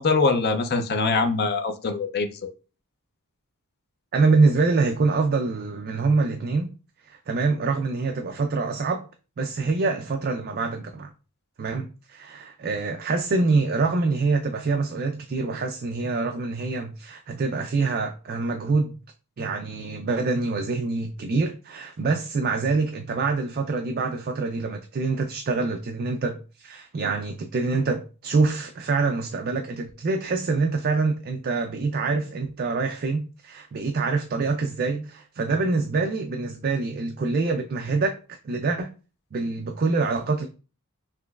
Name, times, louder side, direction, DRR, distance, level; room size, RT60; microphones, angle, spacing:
voice 1, 0.0-2.3, left 4 dB, 45° left, 0.5 m, -23 dB
voice 2, 4.1-6.7 7.0-9.1 9.4-11.1 11.6-19.0 19.4-38.9 39.3-40.5, right 3 dB, 45° right, 0.4 m, -25 dB
5.9 x 3.0 x 2.3 m
head